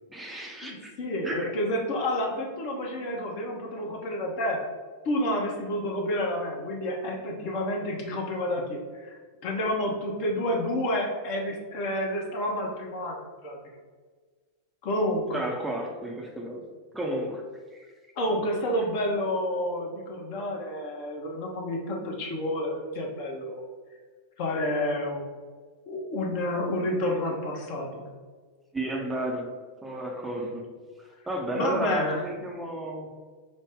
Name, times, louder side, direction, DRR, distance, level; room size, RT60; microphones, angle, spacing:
voice 1, 0.1-0.9 1.2-1.5 15.3-16.7 16.9-17.4 28.7-29.5 29.8-30.7 31.0-33.1, right 1 dB, 10° right, 0 dB, 0.5 m, -32 dB
voice 2, 0.6-4.6 5.0-13.2 13.4-13.6 14.8-15.5 18.2-23.6 24.4-25.2 25.9-28.0 31.5-32.2, left 1 dB, 45° left, 1 dB, 0.8 m, -29 dB
5.1 x 2.1 x 3.5 m, 1.5 s
figure-of-eight pair, 90°, 0 cm